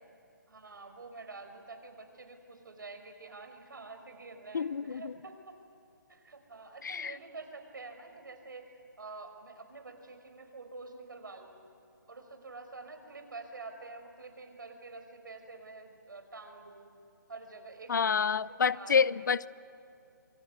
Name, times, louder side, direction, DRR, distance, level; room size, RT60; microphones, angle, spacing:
voice 1, 0.5-5.6 6.1-11.6 12.1-16.9 17.3-19.3, right 3 dB, 75° right, 6 dB, 5.1 m, -48 dB
voice 2, 4.5-5.1 6.8-7.1 17.9-19.5, left 6 dB, 65° left, 20 dB, 0.6 m, -28 dB
27.0 x 23.5 x 9.5 m, 2.7 s
hypercardioid pair, 150°, 11 cm